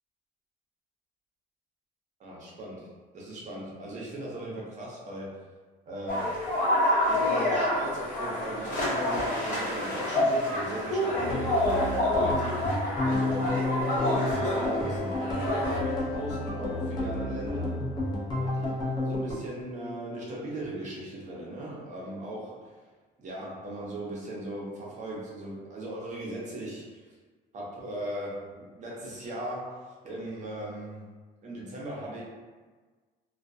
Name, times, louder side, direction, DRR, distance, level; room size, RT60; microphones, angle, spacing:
voice 1, 2.2-2.8 3.1-5.3 5.9-6.3 7.1-11.6 12.1-12.7 13.0-17.8 18.3-22.6 23.2-27.0 27.5-29.8 30.0-31.0 31.4-32.2, right 1 dB, 45° right, -5 dB, 0.8 m, -38 dB
sound 1, 6.1-15.8, left 1 dB, 50° left, 0.8 m, -28 dB
sound 2, 11.1-19.3, left 1 dB, 25° left, 0.6 m, -31 dB
2.3 x 2.1 x 2.6 m, 1.4 s
cardioid pair, 110°, 17 cm